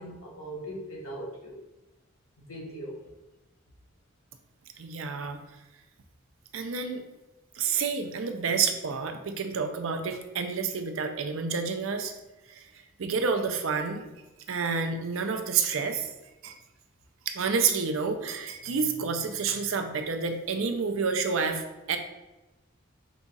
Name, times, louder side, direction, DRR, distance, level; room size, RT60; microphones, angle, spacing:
voice 1, 0.0-1.6 2.5-3.0, right 1 dB, 80° left, -4 dB, 1.5 m, -39 dB
voice 2, 4.8-5.4 6.5-7.0 7.6-12.1 12.5-12.6 13.0-14.0 14.5-16.1 16.4-16.5 17.3-22.0, right 5 dB, 70° right, 7 dB, 0.5 m, -29 dB
4.9 x 2.4 x 3.9 m, 1.0 s
head